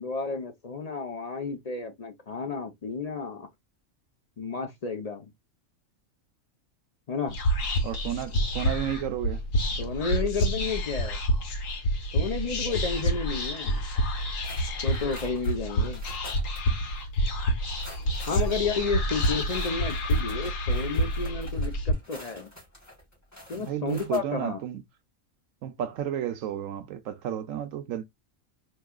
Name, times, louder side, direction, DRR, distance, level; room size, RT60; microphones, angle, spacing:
voice 1, 0.0-3.5 4.4-5.3 7.1-7.4 9.8-11.2 12.1-13.8 14.8-16.0 18.3-22.5 23.5-24.6, left 4 dB, 50° left, 0.5 m, -32 dB
Whispering, 7.3-21.9, equal, 70° left, 1.3 m, -28 dB
voice 2, 7.8-9.4 23.5-24.8 25.6-28.0, right 10 dB, 75° right, 1.0 m, -32 dB
sound 1, 14.4-16.7 17.0-17.1 17.6-24.2, left 1 dB, 10° left, 3.0 m, -48 dB
4.6 x 3.1 x 2.2 m
omnidirectional pair, 1.5 m